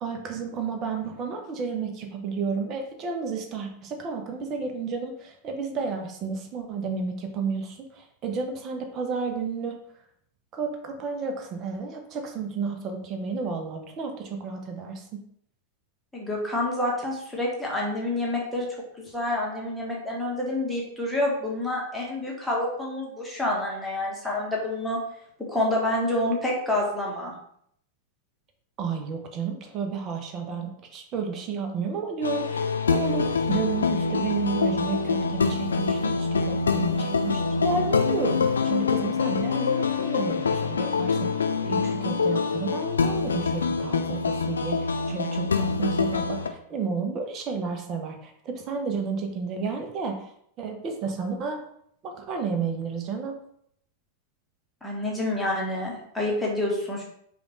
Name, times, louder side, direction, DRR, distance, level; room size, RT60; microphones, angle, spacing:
voice 1, 0.0-9.8 10.5-15.2 28.8-50.3 50.6-51.6 52.0-53.4, right 5 dB, 35° right, 4 dB, 0.7 m, -32 dB
voice 2, 16.1-18.7 19.0-25.0 25.5-27.3 54.8-57.0, left 1 dB, 5° left, -4 dB, 1.2 m, -28 dB
sound 1, 32.2-46.5, left 4 dB, 70° left, 0.3 m, -25 dB
5.0 x 2.5 x 3.1 m, 0.69 s
figure-of-eight pair, 90°, 0 cm